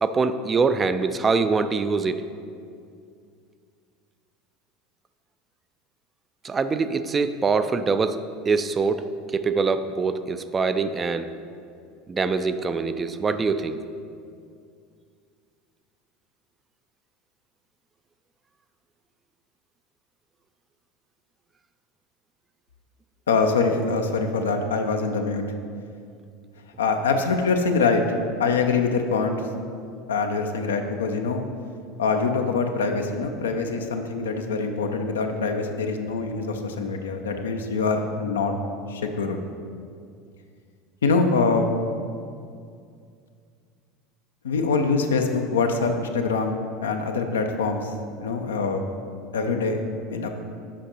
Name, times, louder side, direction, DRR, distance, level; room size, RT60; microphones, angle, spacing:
voice 1, 0.0-2.3 6.4-8.2 8.5-11.3 12.1-13.8, right 4 dB, 25° right, 10 dB, 0.3 m, -24 dB
voice 2, 23.3-25.4 26.8-28.0 28.4-29.4 30.1-31.4 32.0-38.5 38.9-39.4 41.0-41.7 44.4-47.9 48.2-48.8 49.3-49.8 50.1-50.3, left 4 dB, 75° left, 5 dB, 0.6 m, -24 dB
7.4 x 5.1 x 4.2 m, 2.3 s
figure-of-eight pair, 75°, 0 cm